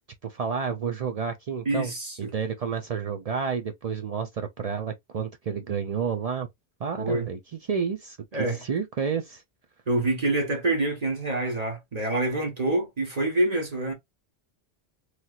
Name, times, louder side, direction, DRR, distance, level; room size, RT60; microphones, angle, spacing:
voice 1, 0.2-1.9 2.2-6.5 6.8-7.4 7.7-8.2 8.5-9.4, right 6 dB, 60° right, 0.4 m, -30 dB
voice 2, 1.6-2.3 7.0-7.3 8.3-8.6 9.9-13.9, right 2 dB, 40° right, 1.0 m, -26 dB
3.2 x 2.8 x 2.3 m
omnidirectional pair, 1.1 m